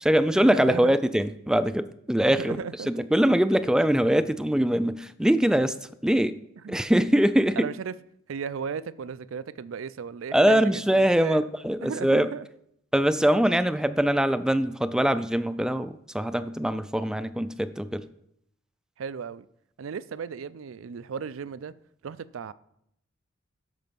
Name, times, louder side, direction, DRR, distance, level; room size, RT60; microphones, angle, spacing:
voice 1, 0.0-2.6 2.9-5.7 6.0-6.4 6.7-7.7 10.3-12.3 12.9-18.0, equal, 5° right, 12 dB, 0.3 m, -23 dB
voice 2, 0.5-0.9 2.3-2.9 6.6-6.8 7.6-7.9 8.3-11.5 11.8-12.5 19.0-19.5 19.8-21.7 22.0-22.5, right 6 dB, 80° right, 17 dB, 0.4 m, -35 dB
12.5 x 5.2 x 5.3 m, 0.75 s
head